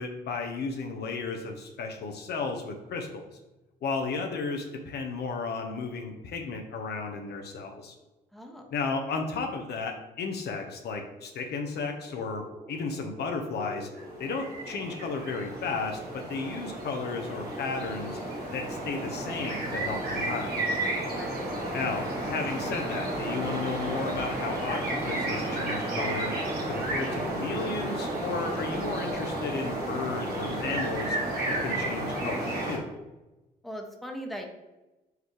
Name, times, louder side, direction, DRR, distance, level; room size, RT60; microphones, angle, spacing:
voice 1, 0.0-3.2 3.8-7.9 8.7-13.9 14.2-18.2 18.5-20.6 21.7-26.3 26.7-31.2 31.5-32.8, left 4 dB, 50° left, 3 dB, 0.7 m, -34 dB
voice 2, 8.3-8.7 21.1-21.8 33.6-34.5, equal, ahead, 2 dB, 1.0 m, -40 dB
sound 1, 12.0-29.0, equal, 90° right, 0.6 m, -47 dB
sound 2, 13.9-32.8, right 1 dB, 50° right, 1.5 m, -32 dB
4.6 x 3.3 x 3.2 m, 1.0 s
figure-of-eight pair, 45°, 21 cm